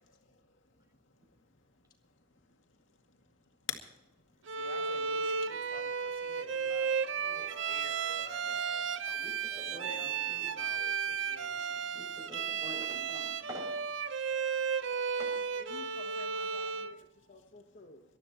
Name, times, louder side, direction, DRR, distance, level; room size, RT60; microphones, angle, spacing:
voice 1, 4.5-8.9 9.7-11.9, left 3 dB, 85° left, 3 dB, 2.2 m, -51 dB
Bowed string instrument, 4.5-17.0, right 6 dB, 70° right, 0.6 m, -34 dB
Wind instrument woodwind instrument, 6.5-11.8, right 2 dB, 40° right, 2.1 m, -54 dB
voice 2, 9.0-10.7 11.9-13.8 14.9-15.3, equal, 20° right, 0 dB, 6.6 m, -48 dB
voice 3, 15.6-18.0, left 2 dB, 50° left, 4 dB, 1.4 m, -53 dB
19.0 x 13.0 x 4.3 m, 0.96 s
head